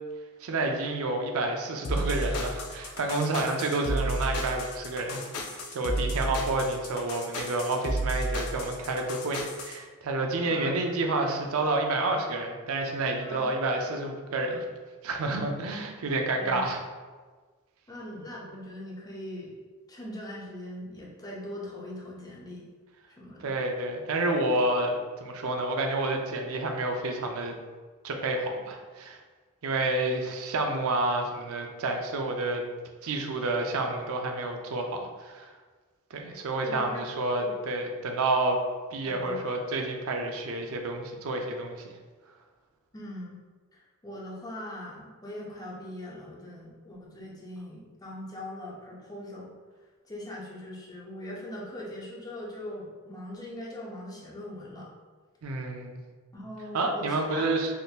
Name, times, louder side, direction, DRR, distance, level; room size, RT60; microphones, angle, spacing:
voice 1, 0.4-5.2 5.5-14.6 15.0-16.8 23.4-27.6 28.0-29.2 29.6-32.6 33.0-35.5 36.1-38.6 38.9-41.8 55.4-56.0 56.7-57.7, right 2 dB, 70° right, 3 dB, 0.5 m, -29 dB
sound 1, 1.8-9.8, right 1 dB, 85° left, 0.5 m, -32 dB
voice 2, 10.4-10.8 13.2-13.5 16.4-16.7 17.9-19.6 19.9-22.7 23.2-23.6 36.7-37.1 37.4-37.5 39.1-39.5 42.9-43.4 43.7-49.5 50.0-54.9 56.3-57.5, left 1 dB, 15° left, -4 dB, 0.6 m, -41 dB
3.5 x 2.6 x 2.4 m, 1.4 s
head